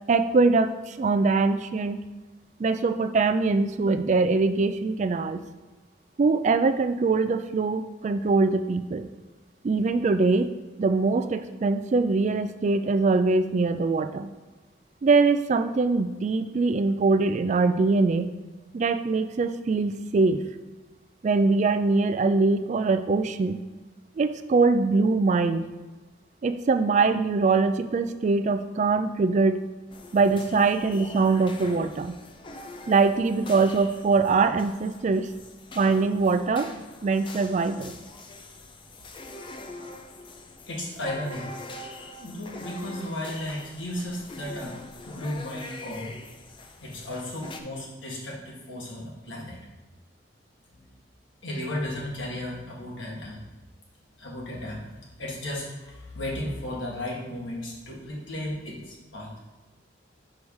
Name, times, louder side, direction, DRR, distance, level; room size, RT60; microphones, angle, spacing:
voice 1, 0.1-2.0 2.6-5.4 6.2-9.1 9.6-10.5 10.8-14.3 15.0-18.3 18.7-20.4 21.2-23.6 24.2-25.6 26.4-29.6 30.1-32.1 32.9-35.3 35.8-36.7 37.0-38.0, right 4 dB, 40° right, 10 dB, 0.3 m, -23 dB
sound 1, 29.9-47.6, left 2 dB, 25° left, 0.5 m, -44 dB
voice 2, 40.7-41.5 42.2-46.2 46.8-49.6 50.7-50.8 51.4-53.4 54.2-54.9 55.2-59.3, left 1 dB, 85° left, -3 dB, 1.8 m, -34 dB
5.3 x 4.9 x 4.7 m, 1.2 s
head